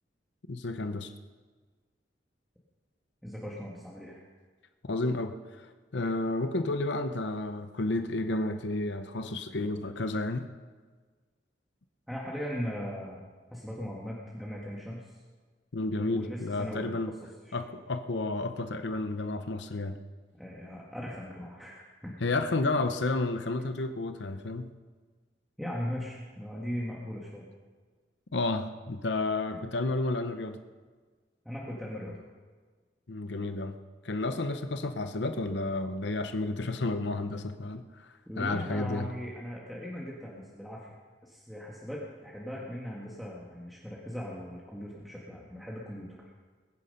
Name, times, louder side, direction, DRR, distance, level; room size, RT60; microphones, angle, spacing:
voice 1, 0.5-1.1 4.8-10.5 15.7-17.1 17.5-20.0 22.2-24.7 28.3-30.6 33.1-33.8 34.0-39.1, left 2 dB, 75° left, 8 dB, 0.8 m, -31 dB
voice 2, 3.2-4.2 12.1-13.2 13.5-15.1 16.0-17.0 17.5-17.6 20.4-22.2 25.6-27.4 31.4-32.2 38.3-40.9 41.2-46.2, equal, ahead, -5 dB, 1.6 m, -39 dB
21.5 x 10.0 x 5.4 m, 1.5 s
head